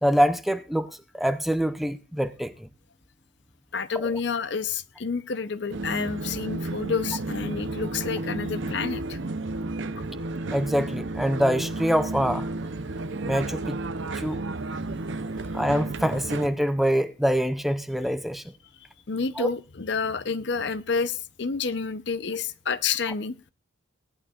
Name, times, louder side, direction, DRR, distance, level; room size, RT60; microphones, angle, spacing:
voice 1, 0.0-2.5 4.0-4.1 10.5-12.5 13.3-13.8 14.1-14.4 15.5-18.4 19.4-19.5, equal, ahead, 0.5 m, -25 dB
voice 2, 3.7-9.2 19.1-23.4, left 5 dB, 55° left, 0.7 m, -29 dB
sound 1, 5.7-16.5, right 2 dB, 65° right, 0.7 m, -32 dB
18.0 x 11.0 x 2.4 m
head